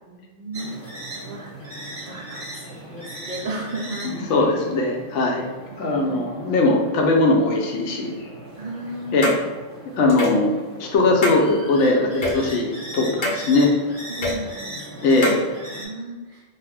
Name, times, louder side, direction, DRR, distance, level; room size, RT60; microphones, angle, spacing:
voice 1, 0.1-0.8 1.1-1.5 1.8-4.2 5.7-6.3 8.6-9.4 13.2-13.3 14.1-15.0 15.7-16.4, right 1 dB, 60° right, -3 dB, 0.4 m, -34 dB
sound 1, 0.5-15.9, right 1 dB, 15° right, 1.0 m, -38 dB
voice 2, 4.0-5.5 5.8-8.1 9.1-9.4 10.0-10.5 10.8-13.7 15.0-15.4, left 2 dB, 80° left, 1 dB, 0.9 m, -20 dB
sound 2, 9.2-9.4 10.1-10.4 11.2-11.4 12.2-12.3 13.2-13.4 14.2-14.3 15.2-15.4, left 2 dB, 55° left, 0.6 m, -23 dB
3.0 x 2.1 x 3.1 m, 1.2 s
omnidirectional pair, 1.2 m